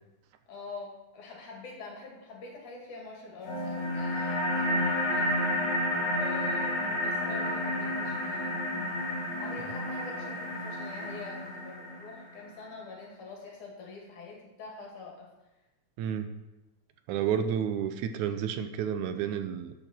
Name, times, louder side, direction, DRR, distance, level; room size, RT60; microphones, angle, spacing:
voice 1, 0.5-5.4 6.1-9.0 9.4-15.3 17.1-17.3, left 3 dB, 75° left, -1 dB, 3.8 m, -45 dB
sound 1, 3.4-12.4, left 1 dB, 60° left, 4.7 m, -31 dB
voice 2, 16.0-16.3 17.1-19.7, right 8 dB, 80° right, 9 dB, 2.0 m, -30 dB
12.0 x 7.5 x 4.4 m, 1.0 s
omnidirectional pair, 3.5 m